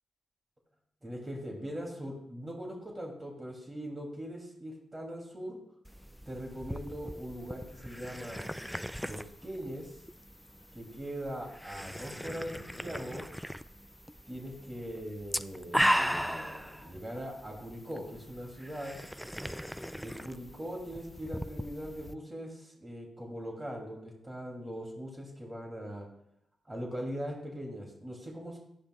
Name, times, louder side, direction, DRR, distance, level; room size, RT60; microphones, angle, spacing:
voice 1, 1.0-5.6 6.3-8.5 9.0-10.0 10.7-13.2 14.3-19.0 20.0-26.1 26.7-28.6, equal, 25° right, 0 dB, 2.8 m, -41 dB
sound 1, 5.8-22.1, equal, ahead, 0.4 m, -37 dB
11.5 x 10.0 x 2.4 m, 0.77 s
hypercardioid pair, 40°, 0 cm